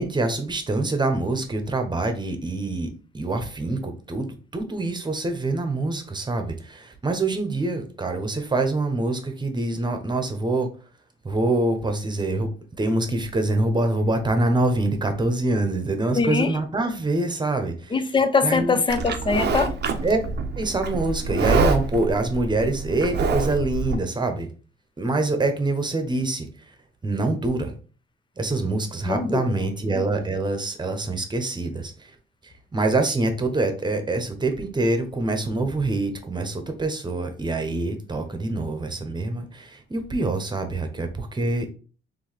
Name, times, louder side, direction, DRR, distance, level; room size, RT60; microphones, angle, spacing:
voice 1, 0.0-10.7 11.2-12.5 12.8-17.9 18.4-18.8 20.0-20.2 20.6-24.5 25.0-26.5 27.0-27.7 28.4-32.1 32.4-41.7, right 2 dB, 20° right, 1.0 m, -25 dB
voice 2, 16.1-16.5 17.9-19.8 29.0-29.6, left 4 dB, 25° left, 0.6 m, -22 dB
Livestock farm animals working animals, 18.9-23.9, right 4 dB, 55° right, 0.7 m, -26 dB
4.6 x 3.4 x 3.3 m
cardioid pair, 90°, 20 cm